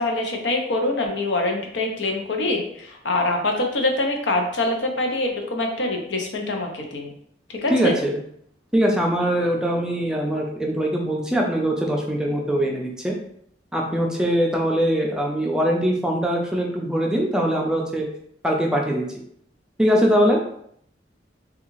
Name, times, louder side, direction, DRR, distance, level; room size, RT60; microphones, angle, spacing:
voice 1, 0.0-7.1 7.5-7.9, left 2 dB, 85° left, 2 dB, 0.7 m, -24 dB
voice 2, 7.7-8.1 8.7-13.1 13.7-18.1 18.4-19.0 19.8-20.4, equal, 5° right, -1 dB, 0.4 m, -22 dB
3.5 x 2.3 x 3.0 m, 0.68 s
head